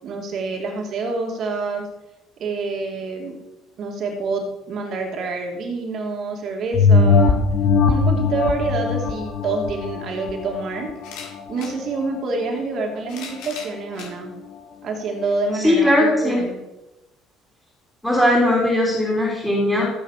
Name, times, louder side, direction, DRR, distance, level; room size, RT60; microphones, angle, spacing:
voice 1, 0.0-1.8 2.4-3.4 3.8-7.4 7.8-10.9 11.5-14.3 14.8-16.6, right 3 dB, 40° right, 2 dB, 2.7 m, -27 dB
sound 1, 6.7-11.7 12.2-12.3, left 4 dB, 40° left, 1.3 m, -20 dB
sound 2, 11.0-11.8 12.8-14.1 14.9-15.0 16.3-16.4, left 5 dB, 70° left, 5.5 m, -38 dB
voice 2, 15.5-16.4 18.0-19.8, left 1 dB, ahead, -4 dB, 3.5 m, -18 dB
16.0 x 8.9 x 6.8 m, 1.0 s
cardioid pair, 175°, 0 cm